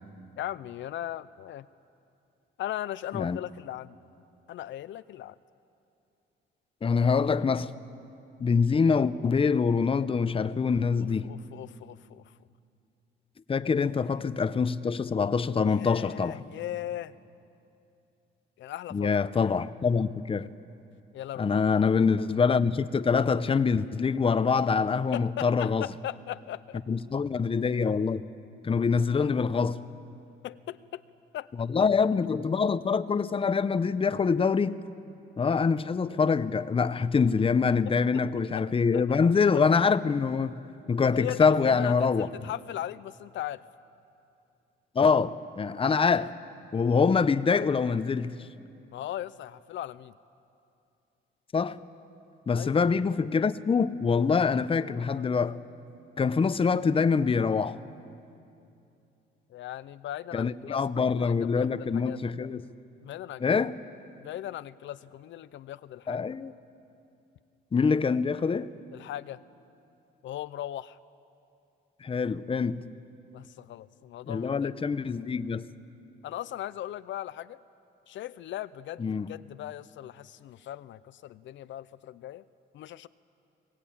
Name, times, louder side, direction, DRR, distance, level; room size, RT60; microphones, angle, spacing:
voice 1, 0.4-1.7 2.6-4.0 4.5-5.4 11.0-12.3 13.8-13.9 15.7-17.1 18.6-19.1 21.1-21.6 25.1-26.8 30.4-31.0 31.3-31.5 37.9-38.0 38.5-38.7 38.9-39.2 41.1-43.6 48.9-50.1 52.5-52.8 59.5-60.8 61.1-62.2 63.0-63.6 64.2-66.3 68.9-69.4 70.2-71.0 73.3-74.7 76.2-77.6 78.1-82.4 82.7-83.1, left 12 dB, 70° left, 0.5 m, -38 dB
voice 2, 6.8-7.7 8.4-11.3 13.5-16.4 18.9-20.5 21.4-25.9 26.9-28.2 28.6-29.9 31.6-34.8 35.4-42.3 44.9-46.3 46.7-48.4 51.5-51.8 52.5-55.6 56.2-57.8 60.3-62.7 63.4-63.7 66.1-66.5 67.7-68.7 72.0-72.9 74.3-75.7 79.0-79.3, left 5 dB, 25° left, 0.7 m, -25 dB
22.5 x 18.5 x 8.6 m
cardioid pair, 90°, 20 cm